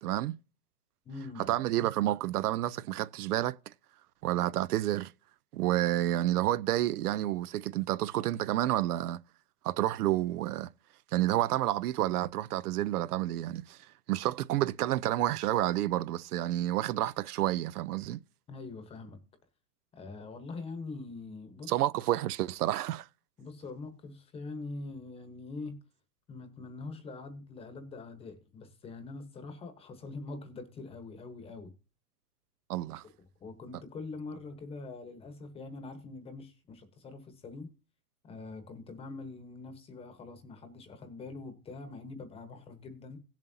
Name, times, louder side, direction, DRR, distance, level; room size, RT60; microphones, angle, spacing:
voice 1, 0.0-0.3 1.5-3.6 4.2-5.1 5.5-9.2 9.6-10.7 11.1-13.8 14.1-18.2 21.7-23.1 32.7-33.0, right 14 dB, 70° right, 0.6 m, -29 dB
voice 2, 1.0-1.5 18.5-19.2 19.9-21.7 23.4-25.8 26.3-31.7 33.0-33.1 33.4-37.7 38.3-43.2, left 3 dB, 10° left, 1.0 m, -43 dB
17.0 x 7.4 x 2.7 m
supercardioid pair, 155°, 48 cm